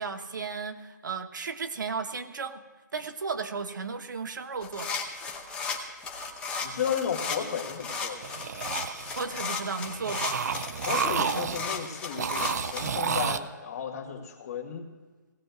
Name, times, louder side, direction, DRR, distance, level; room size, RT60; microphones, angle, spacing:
voice 1, 0.0-2.6 2.9-5.0 9.1-10.5, right 5 dB, 75° right, 8 dB, 1.0 m, -34 dB
sound 1, 4.6-12.9, left 5 dB, 10° left, 0.8 m, -35 dB
voice 2, 6.6-8.3 10.9-14.9, left 7 dB, 55° left, 3 dB, 1.8 m, -33 dB
sound 2, 8.2-9.4 9.8-11.8 12.2-13.4, right 6 dB, 55° right, 0.6 m, -31 dB
18.5 x 16.5 x 2.4 m, 1.3 s
hypercardioid pair, 160°, 10 cm